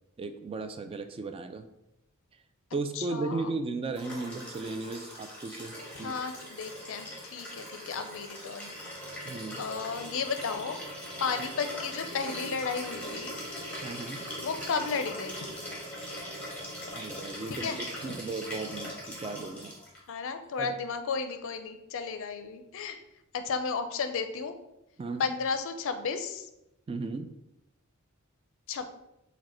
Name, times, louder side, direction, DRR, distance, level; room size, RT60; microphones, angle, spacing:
voice 1, 0.2-1.7 2.7-6.1 9.2-9.7 13.8-14.3 16.9-19.8 20.6-20.7 25.0-25.2 26.9-27.3, right 3 dB, 25° right, 7 dB, 0.3 m, -36 dB
voice 2, 2.9-3.5 6.0-8.7 9.6-10.8 11.2-13.4 14.4-15.6 17.5-17.8 20.1-23.0 23.3-24.5 25.2-26.5 28.7-29.0, left 5 dB, 65° left, 8 dB, 0.5 m, -33 dB
Liquid, 3.9-20.0 21.3-21.4, equal, 5° left, 1.2 m, -40 dB
4.8 x 2.2 x 4.2 m, 0.87 s
head